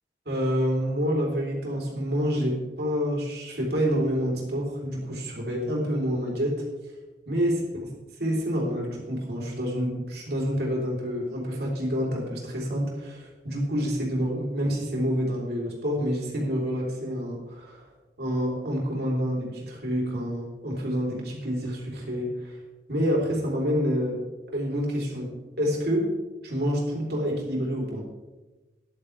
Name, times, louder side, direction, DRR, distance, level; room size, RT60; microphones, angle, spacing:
voice 1, 0.3-6.6 7.3-7.9 8.2-17.8 18.2-22.6 22.9-24.2 24.5-26.1 26.4-28.1, equal, 60° right, -2 dB, 3.8 m, -28 dB
14.0 x 11.0 x 3.4 m, 1.2 s
head